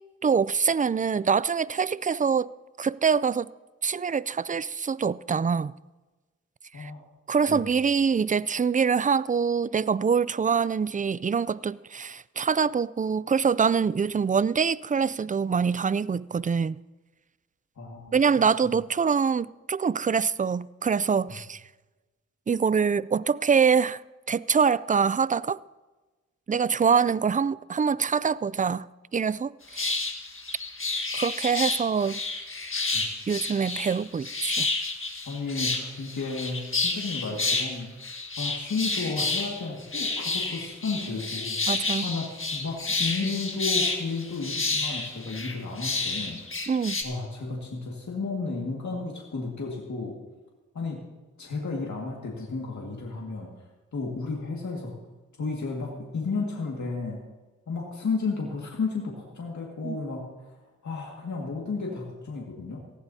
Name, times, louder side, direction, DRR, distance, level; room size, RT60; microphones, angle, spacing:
voice 1, 0.2-2.5 2.8-3.5 3.8-5.7 6.8-6.9 7.3-16.8 18.1-21.6 22.5-24.0 24.3-25.6 26.5-28.9 29.1-29.9 31.1-32.2 33.3-34.7 41.7-42.1 46.7-47.0 59.8-60.0, right 6 dB, 30° right, 0.4 m, -24 dB
voice 2, 17.8-18.1 21.3-21.4 32.9-33.1 35.3-37.9 38.4-41.6 42.0-46.4 47.0-50.2 50.7-51.0 51.4-53.5 53.9-55.0 55.4-57.2 57.7-60.5 60.8-62.8, left 4 dB, 75° left, 2.0 m, -33 dB
sound 1, 29.7-47.0, left 3 dB, 45° left, 1.7 m, -30 dB
19.0 x 15.0 x 2.8 m
cardioid pair, 50°, 29 cm